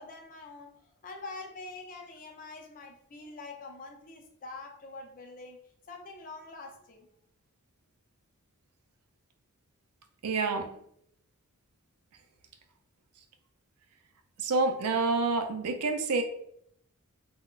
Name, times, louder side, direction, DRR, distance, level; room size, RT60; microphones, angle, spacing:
voice 1, 0.0-5.6 5.9-7.1, left 3 dB, 40° left, 2 dB, 0.5 m, -45 dB
voice 2, 10.2-10.7 14.4-16.2, right 3 dB, 85° right, 7 dB, 0.4 m, -28 dB
2.4 x 2.1 x 3.7 m, 0.71 s
head